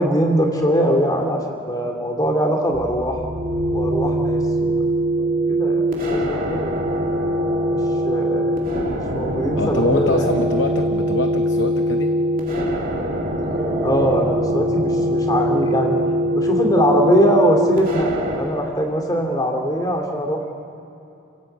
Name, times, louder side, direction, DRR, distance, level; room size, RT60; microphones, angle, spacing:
voice 1, 0.0-3.2 3.7-4.7 5.2-6.8 7.7-8.6 8.8-10.3 13.8-16.0 16.4-20.5, equal, 20° left, 2 dB, 2.8 m, -21 dB
sound 1, 2.7-18.4, equal, 40° right, 2.8 m, -22 dB
sound 2, 7.5-8.8 10.1-12.3 13.6-15.7, right 2 dB, 10° right, 1.4 m, -35 dB
voice 2, 9.6-12.1, left 2 dB, 55° left, 7 dB, 0.8 m, -24 dB
29.5 x 16.0 x 8.1 m, 2.7 s
head